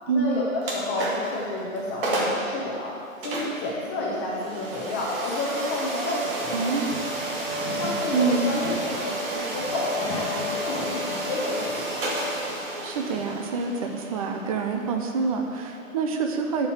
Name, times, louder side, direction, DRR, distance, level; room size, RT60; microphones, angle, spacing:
voice 1, 0.1-2.9 3.2-6.7 7.7-12.2, left 2 dB, 15° left, -6 dB, 0.9 m, -30 dB
sound 1, 0.6-1.4 1.8-1.9 2.0-2.5 3.2-16.0, right 1 dB, 40° right, 1.9 m, -31 dB
voice 2, 6.5-6.9 7.6-7.7 8.1-8.5 12.8-16.7, right 4 dB, 25° right, 3 dB, 0.6 m, -26 dB
11.5 x 5.1 x 7.1 m, 2.6 s
hypercardioid pair, 160°, 41 cm